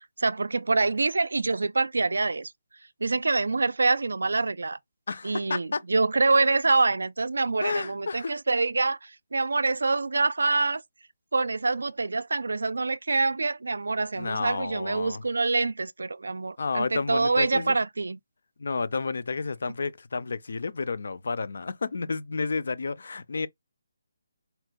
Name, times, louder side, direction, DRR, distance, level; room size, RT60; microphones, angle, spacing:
voice 1, 0.2-2.5 3.0-4.8 5.2-10.8 11.3-18.2, right 3 dB, 85° right, 0.3 m, -25 dB
voice 2, 5.1-5.8 7.6-8.3 14.2-15.2 16.6-17.8 18.6-23.5, left 4 dB, 50° left, 0.4 m, -31 dB
4.4 x 2.1 x 2.5 m
hypercardioid pair, 180°, 0 cm